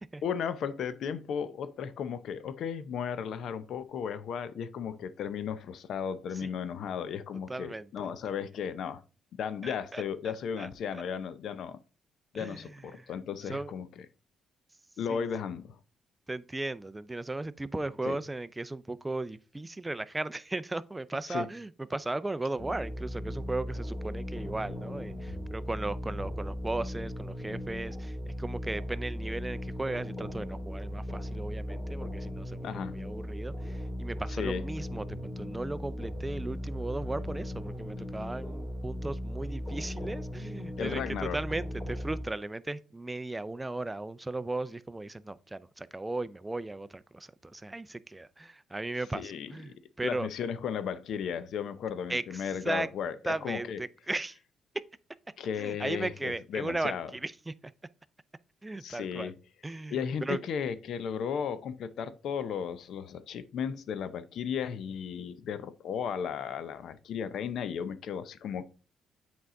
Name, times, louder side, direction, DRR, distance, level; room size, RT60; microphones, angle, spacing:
voice 1, 0.2-9.0 9.4-11.8 12.3-14.1 15.0-15.7 18.0-18.2 21.3-21.5 32.6-32.9 34.3-34.6 40.8-41.4 49.1-49.8 50.0-53.8 55.4-57.1 58.8-59.3 59.9-68.6, left 7 dB, 70° left, 0.7 m, -35 dB
voice 2, 7.5-8.1 9.6-10.0 10.6-11.0 12.3-13.1 13.5-13.7 15.1-15.3 16.3-50.3 52.1-52.9 53.3-54.4 55.6-57.5 58.6-59.3 59.6-60.4, right 2 dB, 15° right, 0.5 m, -36 dB
sound 1, 22.6-42.2, equal, 20° left, 2.9 m, -37 dB
8.2 x 4.7 x 3.8 m
cardioid pair, 90°, 0 cm